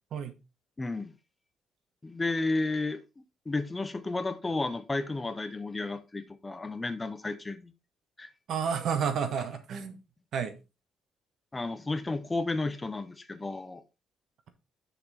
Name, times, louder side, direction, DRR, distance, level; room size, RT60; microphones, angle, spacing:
voice 1, 0.8-1.1 2.0-3.0 3.5-7.7 8.2-8.3 11.5-13.8, left 2 dB, 15° left, 0.6 m, -32 dB
voice 2, 8.5-10.0 10.3-10.6, right 7 dB, 50° right, 1.3 m, -30 dB
6.8 x 5.9 x 4.2 m
cardioid pair, 180°, 0 cm